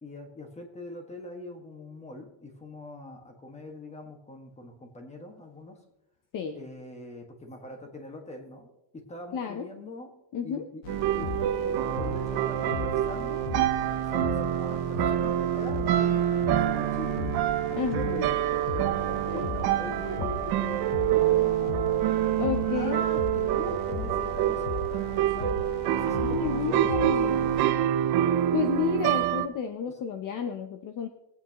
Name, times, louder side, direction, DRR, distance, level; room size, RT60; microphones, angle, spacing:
voice 1, 0.0-5.8 6.5-10.1 10.4-10.8 11.1-13.5 14.0-17.3 17.8-21.9 22.7-27.8, left 1 dB, 15° left, 3 dB, 1.7 m, -42 dB
voice 2, 9.3-9.7 10.3-10.7 17.7-18.2 19.3-19.5 22.4-23.0 26.1-27.5 28.5-31.1, left 8 dB, 45° left, 8 dB, 0.8 m, -31 dB
sound 1, 10.8-27.6, left 4 dB, 70° left, 1.3 m, -38 dB
sound 2, 10.9-29.5, right 11 dB, 55° right, 0.8 m, -26 dB
22.0 x 8.8 x 3.0 m, 0.94 s
cardioid pair, 155°, 46 cm